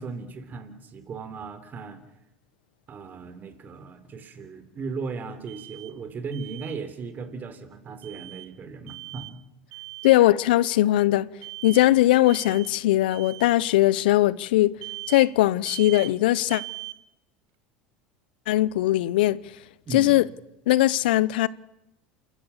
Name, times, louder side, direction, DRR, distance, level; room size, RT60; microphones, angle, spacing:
voice 1, 0.0-2.0 2.9-9.4 9.7-9.8 19.9-20.2, right 4 dB, 35° right, 3.7 m, -37 dB
Alarm, 5.5-5.9 6.3-6.8 8.0-8.5 8.9-9.4 9.7-10.2 11.4-11.9 12.3-12.7 13.1-13.5 14.8-15.3 15.7-16.1 16.5-17.0, right 22 dB, 70° right, 1.3 m, -40 dB
voice 2, 10.0-11.3 11.6-14.7 15.1-16.6 18.5-19.4 19.9-20.2 20.7-21.5, left 15 dB, 80° left, 0.7 m, -20 dB
28.5 x 14.5 x 7.3 m
hypercardioid pair, 90°, 5 cm